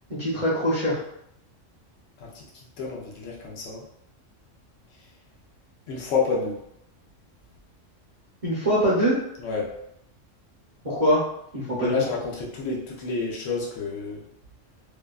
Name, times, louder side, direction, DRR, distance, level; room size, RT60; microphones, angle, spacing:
voice 1, 0.1-1.0 8.4-9.2 10.8-11.2 11.5-12.0, equal, 40° right, -9 dB, 0.6 m, -23 dB
voice 2, 2.2-3.8 5.9-6.6 9.4-9.7 11.8-14.2, left 4 dB, 85° left, -3 dB, 1.0 m, -29 dB
2.7 x 2.2 x 2.3 m, 0.77 s
omnidirectional pair, 1.3 m